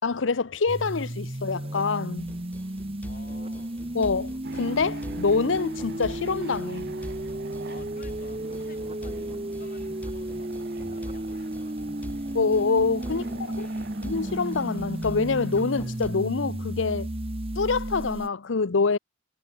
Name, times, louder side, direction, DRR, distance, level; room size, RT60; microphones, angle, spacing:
voice 1, 0.0-2.3 3.9-6.9 12.3-13.3 13.6-13.7 14.0-17.1 17.6-19.0, left 4 dB, 85° left, 0.8 m, -26 dB
sound 1, 0.7-18.3, right 1 dB, 30° right, 1.4 m, -33 dB
sound 2, 2.2-16.1, left 1 dB, 10° left, 0.6 m, -43 dB
voice 2, 3.0-3.8 7.7-10.5 10.8-12.2 13.2-14.0, left 3 dB, 45° left, 2.4 m, -53 dB
sound 3, 4.4-16.5, right 4 dB, 55° right, 0.6 m, -45 dB
head